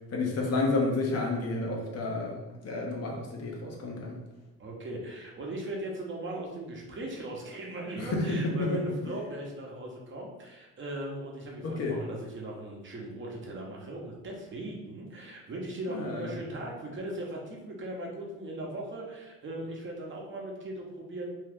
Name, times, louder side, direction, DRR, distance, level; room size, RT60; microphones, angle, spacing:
voice 1, 0.1-4.2 8.0-9.1 11.6-12.0 15.9-16.4, left 2 dB, 55° left, -1 dB, 0.8 m, -30 dB
voice 2, 4.6-21.3, right 1 dB, 40° right, -2 dB, 0.9 m, -38 dB
2.8 x 2.4 x 3.4 m, 1.1 s
cardioid pair, 90°, 30 cm